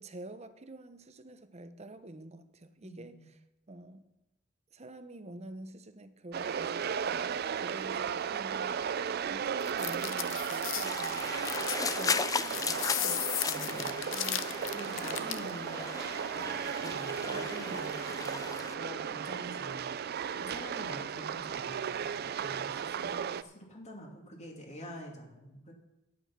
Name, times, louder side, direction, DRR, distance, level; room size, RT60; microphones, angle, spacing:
voice 1, 0.0-3.3 3.7-4.0 4.7-11.4 11.9-13.2 14.1-14.5 15.0-15.6 17.3-17.9, right 1 dB, 35° right, 9 dB, 0.9 m, -48 dB
voice 2, 2.8-3.3 13.4-14.0 14.7-15.8 16.8-19.9 20.4-25.7, equal, 35° left, 1 dB, 2.6 m, -46 dB
sound 1, 6.3-23.4, right 7 dB, 50° right, 0.4 m, -35 dB
sound 2, 9.6-15.5, left 12 dB, 75° left, 0.7 m, -36 dB
sound 3, 10.9-18.8, left 5 dB, 20° left, 0.4 m, -37 dB
11.0 x 8.6 x 5.9 m, 0.95 s
head